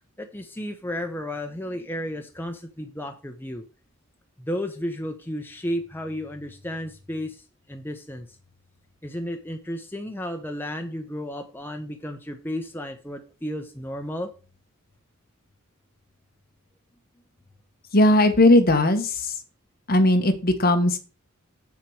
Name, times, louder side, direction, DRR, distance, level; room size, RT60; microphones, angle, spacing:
voice 1, 0.2-3.6 4.4-8.3 9.0-14.3, equal, 10° left, 5 dB, 0.8 m, -33 dB
voice 2, 17.9-19.3 19.9-21.0, left 1 dB, 45° left, 7 dB, 1.3 m, -18 dB
7.7 x 7.2 x 4.7 m, 0.34 s
head